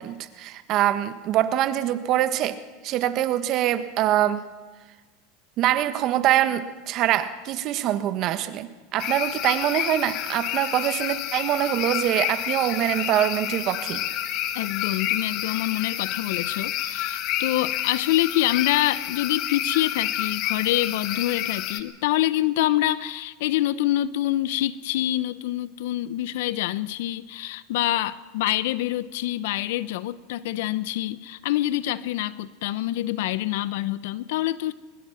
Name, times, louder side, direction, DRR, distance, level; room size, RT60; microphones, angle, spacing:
voice 1, 0.0-2.6 2.8-4.4 5.6-14.0, right 12 dB, 50° right, 11 dB, 1.4 m, -24 dB
sound 1, 9.0-21.8, left 11 dB, 55° left, 1.5 m, -29 dB
voice 2, 14.5-34.7, left 14 dB, 70° left, 17 dB, 0.8 m, -26 dB
21.5 x 21.5 x 5.9 m, 1.3 s
hypercardioid pair, 105°, 0 cm